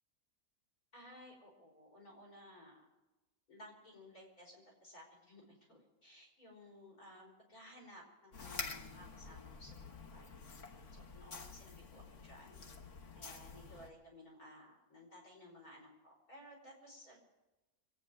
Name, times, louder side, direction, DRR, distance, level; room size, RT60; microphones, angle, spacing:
voice 1, 0.9-2.8 3.5-9.8 10.1-10.3 10.9-12.6 13.1-17.2, left 1 dB, 80° left, -1 dB, 5.6 m, -57 dB
sound 1, 8.3-13.9, left 4 dB, 55° left, 1.7 m, -48 dB
24.0 x 9.3 x 6.4 m, 1.1 s
omnidirectional pair, 1.5 m